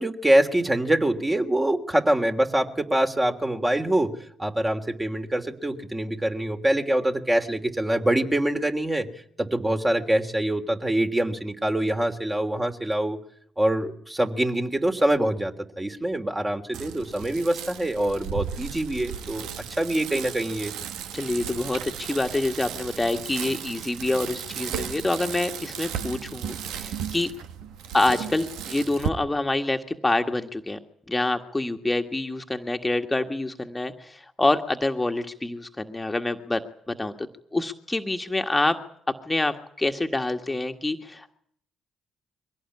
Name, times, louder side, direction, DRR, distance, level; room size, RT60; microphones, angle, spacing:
voice 1, 0.0-4.1 4.4-9.1 9.4-13.2 13.6-19.5 19.8-20.7, right 1 dB, 20° right, 4 dB, 3.1 m, -24 dB
Bicycle, 16.7-29.1, right 9 dB, 75° right, 1.1 m, -35 dB
voice 2, 21.1-27.3 27.9-30.8 31.1-36.6 36.9-37.1 37.5-38.8 39.3-41.3, left 2 dB, 15° left, 5 dB, 1.8 m, -26 dB
23.5 x 17.5 x 9.8 m, 0.68 s
hypercardioid pair, 45°, 0 cm